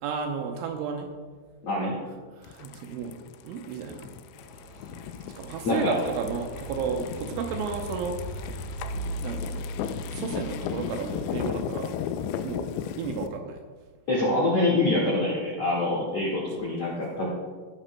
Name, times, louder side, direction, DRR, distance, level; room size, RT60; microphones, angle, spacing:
voice 1, 0.0-1.1 2.3-3.2 3.4-4.1 5.4-8.6 9.2-9.7 10.1-11.9 12.4-13.6 16.6-16.8, right 6 dB, 80° right, 4 dB, 2.9 m, -33 dB
voice 2, 1.6-2.0 5.6-6.0 14.1-17.3, left 2 dB, 60° left, -5 dB, 1.6 m, -25 dB
sound 1, 2.4-13.3, left 9 dB, 85° left, 2.6 m, -36 dB
sound 2, 4.3-11.5, equal, 45° left, 2.1 m, -38 dB
18.0 x 10.0 x 2.2 m, 1.4 s
omnidirectional pair, 5.9 m